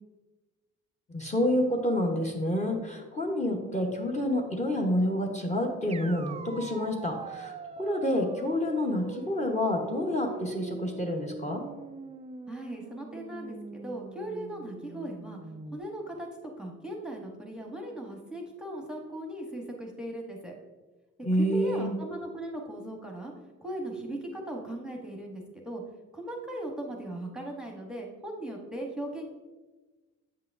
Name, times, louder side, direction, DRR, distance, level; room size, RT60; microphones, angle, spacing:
voice 1, 1.1-11.6 21.2-21.9, left 1 dB, 25° left, 0 dB, 0.9 m, -28 dB
sound 1, 5.9-15.8, right 4 dB, 20° right, 0.3 m, -43 dB
voice 2, 12.5-15.4 15.7-16.3 16.6-20.5 21.4-23.3 23.6-25.8 26.1-29.3, right 1 dB, 5° right, 1 dB, 0.9 m, -38 dB
7.7 x 5.7 x 2.5 m, 1.2 s
cardioid pair, 90°, 30 cm